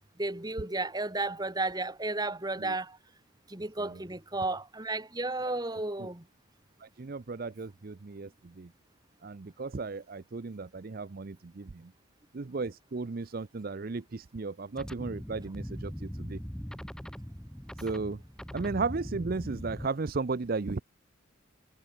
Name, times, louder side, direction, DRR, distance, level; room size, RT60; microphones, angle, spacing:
voice 1, 0.2-3.0 3.5-6.2, right 2 dB, 20° right, 1.6 m, -33 dB
voice 2, 6.8-8.7 9.2-11.9 12.3-16.4 17.8-18.2 18.5-20.8, right 4 dB, 45° right, 0.5 m, -35 dB
sound 1, 14.8-19.9, equal, 5° left, 0.6 m, -40 dB
head